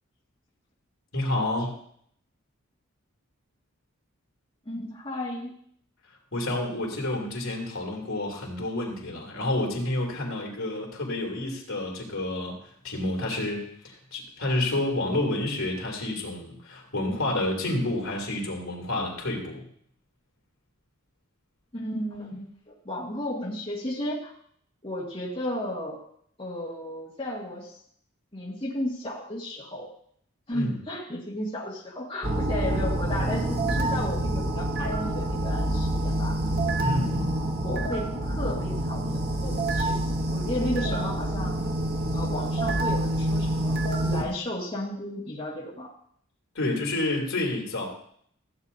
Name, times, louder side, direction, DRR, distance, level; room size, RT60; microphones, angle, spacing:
voice 1, 1.1-1.8 6.3-12.6 12.8-19.6 30.5-30.8 36.8-37.2 46.5-47.9, left 1 dB, 70° left, -2 dB, 3.1 m, -29 dB
voice 2, 4.7-5.5 21.7-24.3 24.8-26.0 26.4-27.8 28.3-29.9 30.5-36.4 36.9-41.5 42.1-45.9, left 1 dB, 25° left, -5 dB, 1.8 m, -34 dB
sound 1, 32.2-44.3, right 1 dB, 45° right, 1.1 m, -27 dB
15.5 x 8.8 x 2.8 m, 0.65 s
head